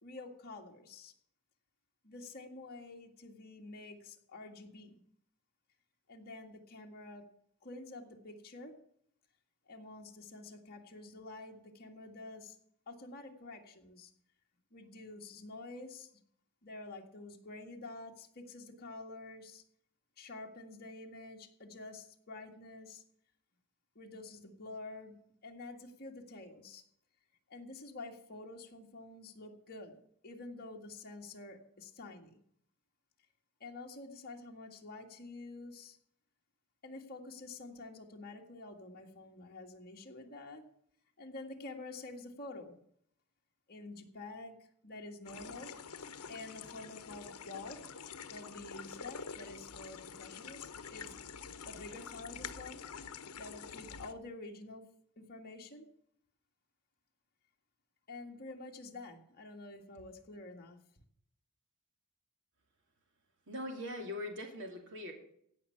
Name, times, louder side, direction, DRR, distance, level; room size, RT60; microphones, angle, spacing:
voice 1, 0.0-1.1 2.0-5.0 6.1-7.2 7.6-8.8 9.7-12.6 12.9-14.1 14.7-16.1 16.6-19.6 20.2-23.0 24.0-25.2 25.4-26.8 27.5-32.3 33.6-36.0 36.8-40.6 41.2-42.8 43.7-44.6 44.8-45.7 46.3-47.8 48.3-51.1 51.7-52.8 53.3-54.9 55.2-55.9 58.1-60.8, left 2 dB, 45° left, 1 dB, 1.9 m, -48 dB
sound 1, 45.2-54.1, left 6 dB, 85° left, 1.0 m, -47 dB
voice 2, 63.5-65.1, left 1 dB, 55° right, 3 dB, 2.8 m, -41 dB
16.5 x 5.7 x 8.5 m, 0.68 s
head